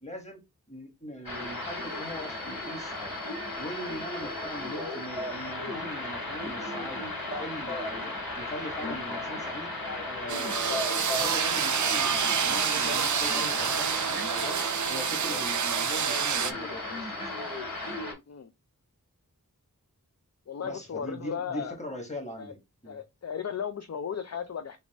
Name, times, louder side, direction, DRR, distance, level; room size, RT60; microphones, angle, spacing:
voice 1, 0.0-0.4 0.7-7.1 7.4-14.6 14.9-17.3 20.6-23.0, equal, 20° left, 1.4 m, -41 dB
sound 1, 1.3-18.1, left 2 dB, 75° left, 2.4 m, -35 dB
sound 2, 10.3-16.5, right 7 dB, 55° right, 0.4 m, -28 dB
voice 2, 20.5-21.8 22.4-22.5 22.9-24.8, left 7 dB, 45° left, 0.5 m, -35 dB
4.1 x 2.4 x 3.5 m
wide cardioid pair, 45°, 36 cm